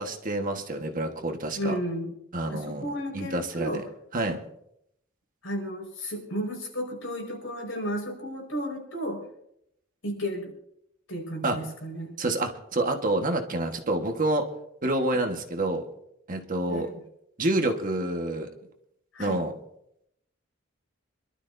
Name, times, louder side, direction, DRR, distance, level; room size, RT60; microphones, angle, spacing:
voice 1, 0.0-1.7 2.3-2.9 3.1-3.8 4.1-4.4 11.4-11.6 12.2-14.5 14.8-15.8 16.3-16.9 17.4-18.5 19.2-19.5, right 2 dB, 45° right, 4 dB, 1.4 m, -28 dB
voice 2, 1.6-2.1 2.5-3.8 5.4-9.2 10.0-10.5 11.1-12.2 16.7-17.0 19.1-19.4, equal, 75° left, 1 dB, 5.2 m, -33 dB
27.0 x 12.5 x 2.7 m, 0.75 s
head